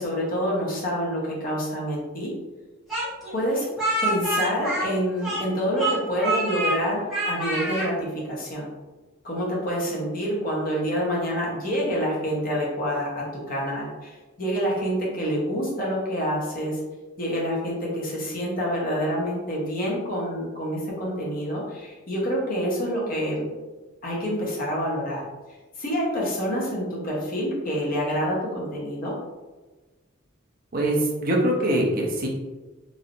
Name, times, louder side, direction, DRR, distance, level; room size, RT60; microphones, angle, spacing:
voice 1, 0.0-2.3 3.3-3.6 4.0-8.7 9.2-16.8 17.2-23.5 24.0-25.3 25.8-29.2, equal, 45° left, -4 dB, 0.9 m, -27 dB
Speech, 2.9-5.5 5.8-6.8 7.1-7.9, right 2 dB, ahead, 1.0 m, -26 dB
voice 2, 30.7-32.3, right 1 dB, 45° right, -1 dB, 0.6 m, -23 dB
3.1 x 2.7 x 2.6 m, 1.2 s
head